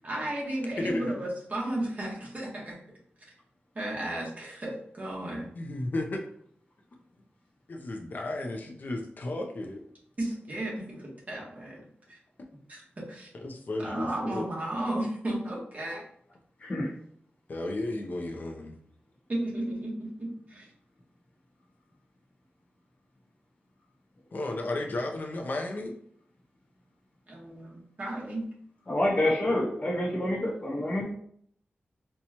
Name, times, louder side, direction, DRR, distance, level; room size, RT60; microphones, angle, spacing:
voice 1, 0.0-2.8 3.7-5.5 10.2-11.8 12.1-12.2 12.7-13.3 13.8-16.0 19.3-20.7 27.3-28.4, right 1 dB, 40° right, -3 dB, 1.1 m, -34 dB
voice 2, 0.8-1.2 5.6-6.2 7.7-9.8 13.4-14.4 17.5-18.7 24.3-25.9, left 2 dB, 50° left, 2 dB, 0.5 m, -33 dB
voice 3, 16.6-16.9 28.9-31.0, left 1 dB, 35° left, -4 dB, 1.0 m, -27 dB
4.2 x 2.2 x 2.8 m, 0.64 s
wide cardioid pair, 115°, 4 cm